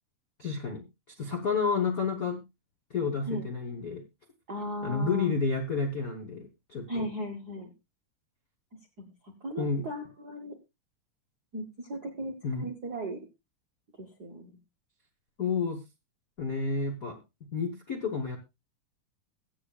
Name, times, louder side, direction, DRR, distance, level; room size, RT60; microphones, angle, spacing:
voice 1, 0.4-0.8 1.2-2.4 2.9-4.0 4.8-7.1 9.6-9.9 12.4-12.7 15.4-15.8 16.4-17.2 17.5-18.4, left 5 dB, 80° left, 4 dB, 0.7 m, -30 dB
voice 2, 4.5-5.3 6.9-7.7 9.0-10.5 11.5-13.2 14.0-14.6, equal, 65° right, 2 dB, 0.9 m, -37 dB
22.5 x 7.9 x 2.4 m, 0.23 s
omnidirectional pair, 3.7 m